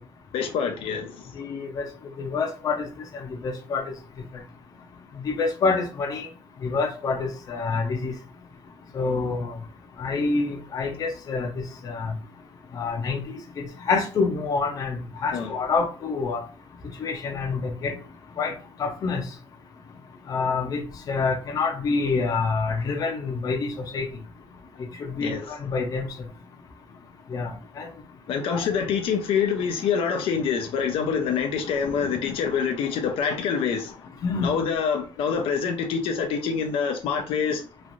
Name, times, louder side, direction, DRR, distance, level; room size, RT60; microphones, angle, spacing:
voice 1, 0.3-1.3 15.3-15.5 25.2-25.5 28.3-34.0 34.4-37.7, left 6 dB, 80° left, 0.5 m, -26 dB
voice 2, 1.4-1.9 2.2-2.9 3.1-3.9 5.2-6.3 6.6-8.1 8.9-9.5 10.0-12.1 12.7-16.4 17.0-17.9 18.4-18.5 18.8-19.2 20.3-24.1 25.0-26.1 27.3-27.9 28.5-28.7 34.2-34.6, left 4 dB, 40° left, 0.6 m, -27 dB
3.1 x 2.5 x 2.5 m
cardioid pair, 160°, 9 cm